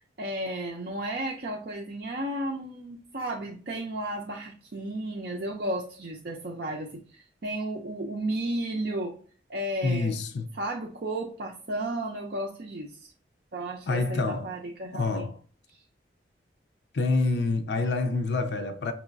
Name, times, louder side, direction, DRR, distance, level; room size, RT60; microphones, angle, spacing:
voice 1, 0.0-9.1 9.5-10.1 10.5-13.1 13.5-15.3 15.7-15.8, right 1 dB, 60° right, 0.5 m, -33 dB
voice 2, 9.8-10.5 13.9-14.5 14.9-15.4 16.9-18.9, left 3 dB, 75° left, 0.5 m, -27 dB
6.0 x 3.0 x 2.5 m
head